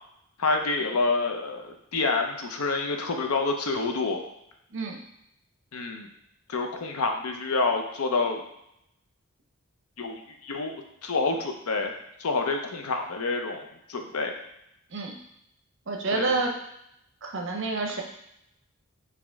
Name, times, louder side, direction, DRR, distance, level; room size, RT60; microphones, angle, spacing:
voice 1, 0.4-4.2 5.7-6.1 6.5-8.4 10.0-10.7 11.0-11.9 12.2-14.3 16.1-16.3, left 3 dB, 85° left, 4 dB, 0.6 m, -28 dB
voice 2, 15.9-16.5 17.2-18.0, right 3 dB, 55° right, 1 dB, 0.7 m, -28 dB
5.1 x 2.8 x 3.5 m, 0.79 s
head